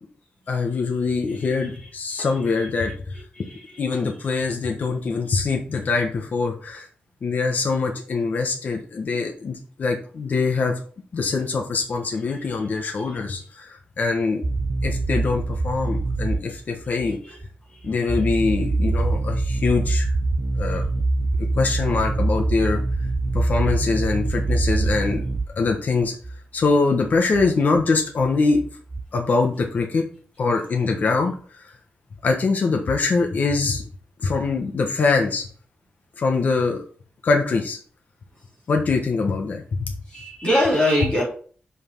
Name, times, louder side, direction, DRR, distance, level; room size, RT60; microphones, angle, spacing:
voice 1, 0.5-3.1 3.8-6.9 7.2-10.8 11.1-14.4 14.8-17.2 17.8-20.1 20.6-20.9 21.6-22.8 23.3-25.2 25.6-26.1 26.5-28.6 29.1-30.0 30.4-31.6 32.2-33.8 34.2-35.5 36.2-36.8 37.2-37.8 38.7-39.9, left 4 dB, 55° left, 2 dB, 1.3 m, -23 dB
voice 2, 3.4-3.8 17.1-17.4 40.1-41.2, left 1 dB, 30° left, -6 dB, 3.6 m, -23 dB
sound 1, 14.4-17.1 17.4-17.5 17.8-25.7 26.0-26.4 26.7-26.8 27.0-27.1 27.3-27.5 27.8-27.9 28.2-29.0, right 2 dB, 35° right, 0.6 m, -24 dB
6.3 x 5.7 x 4.7 m, 0.43 s
wide cardioid pair, 140°, 3 cm